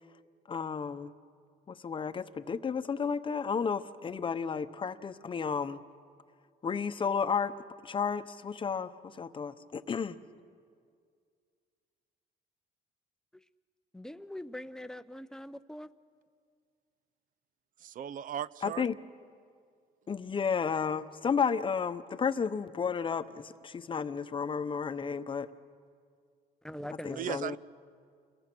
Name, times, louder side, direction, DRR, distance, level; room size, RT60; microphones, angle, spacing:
voice 1, 0.5-1.1 1.7-5.8 6.6-7.5 7.8-10.2 18.6-19.0 20.1-25.5 27.0-27.6, left 6 dB, 30° left, 0.8 m, -32 dB
voice 2, 13.9-15.9 26.6-27.6, left 1 dB, 5° left, 0.6 m, -43 dB
voice 3, 18.0-18.8 27.2-27.6, right 11 dB, 50° right, 0.5 m, -36 dB
28.5 x 22.0 x 6.1 m
cardioid pair, 110°, 17 cm